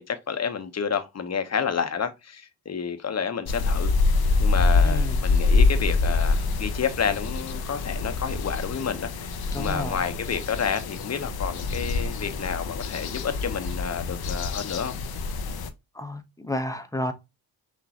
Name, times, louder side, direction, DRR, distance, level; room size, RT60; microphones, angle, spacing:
voice 1, 0.0-15.0, left 6 dB, 35° left, 1.1 m, -30 dB
sound 1, 3.5-15.7, left 3 dB, 55° left, 0.9 m, -25 dB
voice 2, 4.8-5.3 9.5-10.1 15.9-17.1, left 1 dB, 5° left, 1.1 m, -31 dB
6.3 x 2.9 x 3.0 m
supercardioid pair, 70°, 44 cm